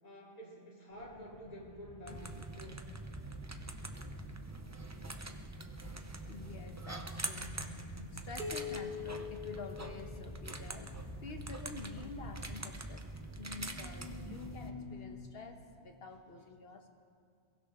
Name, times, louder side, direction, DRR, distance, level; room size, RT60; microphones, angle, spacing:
voice 1, 0.0-2.9, equal, 35° left, -6 dB, 3.0 m, -49 dB
sound 1, 0.9-15.1, left 1 dB, 85° left, 2.2 m, -51 dB
sound 2, 2.1-14.7, right 2 dB, 20° right, 0.6 m, -45 dB
voice 2, 6.3-7.7 8.1-11.0 11.2-13.0 13.4-16.9, left 3 dB, 65° left, 5 dB, 1.4 m, -48 dB
sound 3, 8.4-10.8, left 6 dB, 50° right, 1.8 m, -43 dB
22.5 x 15.5 x 3.7 m, 2.3 s
omnidirectional pair, 1.1 m